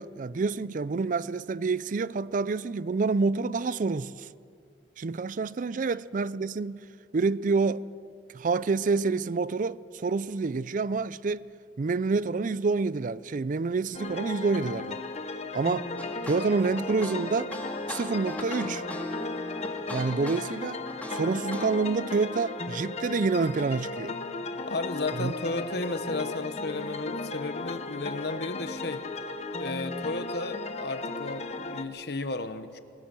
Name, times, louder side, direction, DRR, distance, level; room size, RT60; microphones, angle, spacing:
voice 1, 0.0-4.3 5.0-6.8 7.1-7.8 8.3-11.4 11.8-15.0 15.5-15.9 16.2-17.5 17.9-18.8 19.9-20.8 21.1-24.2 25.2-25.3, right 4 dB, 45° right, 0.4 m, -28 dB
sound 1, 13.9-31.8, left 3 dB, 35° left, 0.9 m, -36 dB
sound 2, 16.0-21.8, left 1 dB, 10° left, 2.0 m, -38 dB
voice 2, 24.7-29.0 29.6-32.8, left 2 dB, 65° left, 1.1 m, -33 dB
20.5 x 17.0 x 7.6 m
head